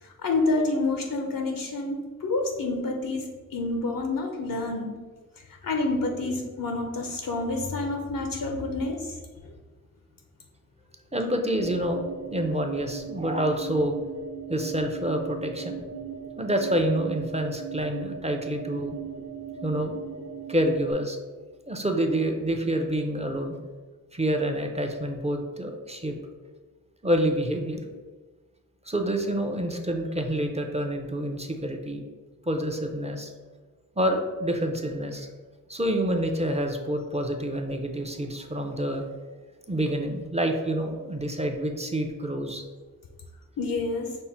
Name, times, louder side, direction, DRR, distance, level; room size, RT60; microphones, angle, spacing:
voice 1, 0.0-4.9 5.6-9.2 43.6-44.2, left 2 dB, 70° left, 3 dB, 0.6 m, -28 dB
voice 2, 11.1-12.0 12.3-14.0 14.5-15.8 16.4-19.0 19.6-20.0 20.5-21.2 21.7-23.6 24.1-26.2 27.0-27.8 28.9-32.0 32.4-33.3 34.0-35.3 35.7-39.0 39.7-42.6, right 1 dB, 20° right, 3 dB, 0.5 m, -27 dB
sound 1, 11.5-20.9, right 7 dB, 45° right, 0.9 m, -38 dB
5.4 x 2.1 x 4.3 m, 1.3 s
wide cardioid pair, 55°, 34 cm